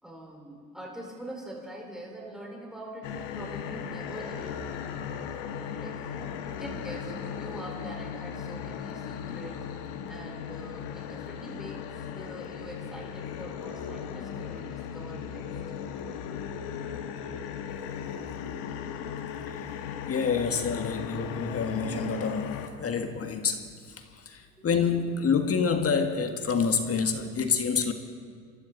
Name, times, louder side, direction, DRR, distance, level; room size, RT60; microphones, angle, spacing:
voice 1, 0.0-4.7 5.6-9.7 10.1-15.6 24.5-24.6, right 1 dB, ahead, -1 dB, 4.5 m, -44 dB
sound 1, 3.0-22.7, left 7 dB, 65° left, 1.5 m, -37 dB
voice 2, 20.1-23.7 24.0-27.9, left 5 dB, 30° left, 6 dB, 1.8 m, -27 dB
28.0 x 12.0 x 4.1 m, 2.1 s
hypercardioid pair, 80°, 45 cm